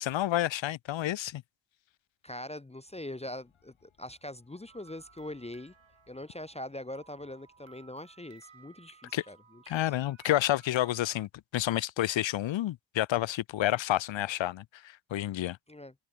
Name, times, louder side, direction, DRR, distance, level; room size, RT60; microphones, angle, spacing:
voice 1, 0.0-1.4 9.1-9.2 9.7-15.6, left 13 dB, 70° left, 0.6 m, -29 dB
voice 2, 2.2-5.7 6.1-9.6 15.7-15.9, left 1 dB, 15° left, 0.7 m, -42 dB
sound 1, 2.8-9.5, left 8 dB, 90° left, 5.5 m, -71 dB
sound 2, 4.7-11.3, right 6 dB, 70° right, 5.9 m, -59 dB
open air
cardioid pair, 40°, 47 cm